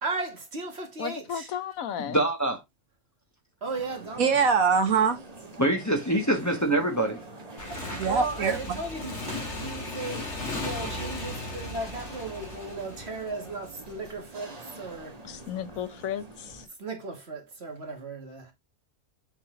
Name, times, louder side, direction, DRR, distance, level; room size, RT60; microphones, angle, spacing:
voice 1, 0.0-1.5 3.6-4.3 8.0-10.3 10.5-15.1 16.8-18.5, right 3 dB, 50° right, 2.1 m, -35 dB
voice 2, 1.0-2.2 15.2-16.7, left 9 dB, 75° left, 1.1 m, -34 dB
voice 3, 2.1-2.6 5.6-7.2 7.6-8.1 10.8-10.9, right 1 dB, 15° left, 1.3 m, -26 dB
sound 1, 3.6-16.7, right 2 dB, 30° right, 1.4 m, -46 dB
voice 4, 4.2-5.2 7.9-8.6, right 5 dB, 75° right, 1.7 m, -23 dB
Motorcycle / Engine, 7.6-13.9, left 2 dB, 55° left, 2.1 m, -37 dB
7.0 x 4.2 x 3.8 m
omnidirectional pair, 1.4 m